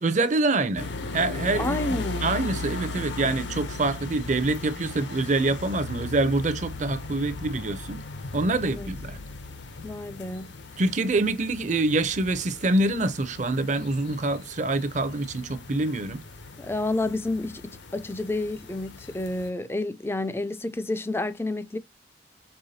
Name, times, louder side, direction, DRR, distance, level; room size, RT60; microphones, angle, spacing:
voice 1, 0.0-8.0 8.3-9.2 10.8-16.2, right 2 dB, 40° right, 0.5 m, -26 dB
sound 1, 0.8-19.5, left 3 dB, 65° left, 0.7 m, -37 dB
voice 2, 1.6-2.3 8.6-8.9 9.8-10.5 16.6-21.8, left 2 dB, 10° left, 0.3 m, -30 dB
5.5 x 3.5 x 2.7 m
head